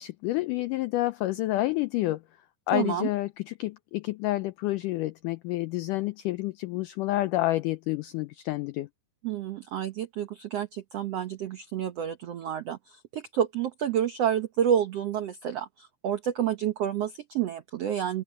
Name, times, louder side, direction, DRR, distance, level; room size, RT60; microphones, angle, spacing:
voice 1, 0.0-2.2 2.7-8.9, left 17 dB, 85° left, 1.8 m, -29 dB
voice 2, 2.7-3.1 9.2-18.2, right 9 dB, 90° right, 1.3 m, -29 dB
omnidirectional pair, 4.4 m